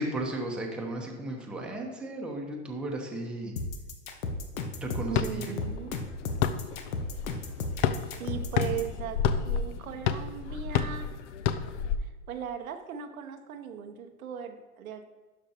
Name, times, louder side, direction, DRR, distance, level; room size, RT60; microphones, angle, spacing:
voice 1, 0.0-3.5 4.8-5.5, right 1 dB, ahead, -1 dB, 0.9 m, -35 dB
sound 1, 3.6-8.9, left 3 dB, 80° left, 1.2 m, -34 dB
sound 2, 5.1-12.0, left 8 dB, 60° left, 0.6 m, -31 dB
voice 2, 5.1-6.0 8.2-11.2 12.0-15.1, right 8 dB, 85° right, 7 dB, 0.9 m, -38 dB
12.0 x 5.3 x 2.9 m, 1.2 s
hypercardioid pair, 135°, 41 cm